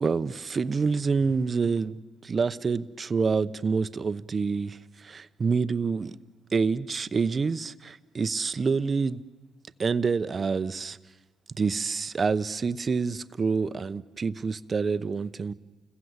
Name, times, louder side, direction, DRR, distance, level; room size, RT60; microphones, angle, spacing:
voice 1, 0.0-6.1 6.5-9.2 9.8-11.0 11.5-15.5, right 5 dB, 35° right, 14 dB, 0.9 m, -27 dB
29.0 x 21.5 x 8.1 m, 1.1 s
cardioid pair, 90°, 0 cm